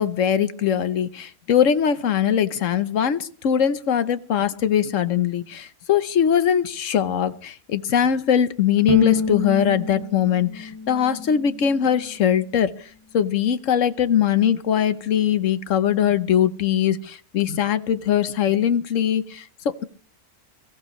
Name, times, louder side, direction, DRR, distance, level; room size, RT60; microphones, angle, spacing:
voice 1, 0.0-12.7 13.1-19.8, left 9 dB, 60° left, 13 dB, 1.2 m, -21 dB
Bowed string instrument, 8.9-12.1, left 3 dB, 15° left, 1.3 m, -28 dB
22.0 x 15.0 x 3.1 m, 0.42 s
omnidirectional pair, 1.6 m